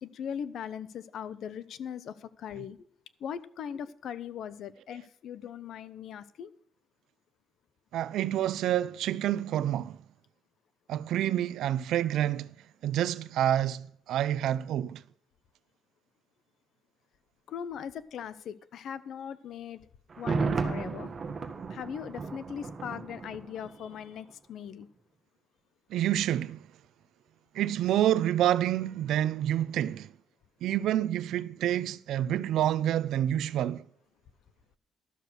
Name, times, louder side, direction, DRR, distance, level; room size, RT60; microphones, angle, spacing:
voice 1, 0.0-2.8 3.2-6.5 17.5-19.8 20.2-21.1 21.7-24.9, left 8 dB, 65° left, 0.8 m, -39 dB
voice 2, 7.9-10.0 10.9-12.5 12.8-15.0 25.9-26.6 27.5-30.1 30.6-33.8, right 12 dB, 85° right, 0.5 m, -28 dB
Thunder, 20.1-24.0 24.3-24.4, right 4 dB, 35° right, 1.6 m, -34 dB
12.5 x 6.7 x 6.2 m
cardioid pair, 130°, 0 cm